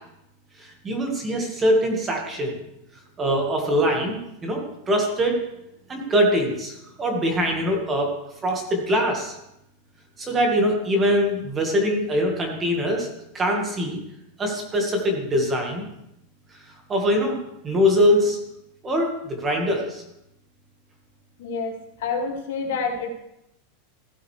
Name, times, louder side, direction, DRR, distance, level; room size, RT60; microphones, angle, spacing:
voice 1, 0.6-2.5 3.2-5.4 5.9-8.1 8.4-9.3 10.2-13.1 13.3-14.0 14.4-15.9 16.9-17.4 17.6-18.4 18.8-20.0, equal, 15° right, 2 dB, 1.6 m, -23 dB
voice 2, 21.4-23.1, left 4 dB, 65° left, 2 dB, 2.1 m, -28 dB
15.5 x 8.6 x 3.3 m, 0.82 s
supercardioid pair, 170°, 0 cm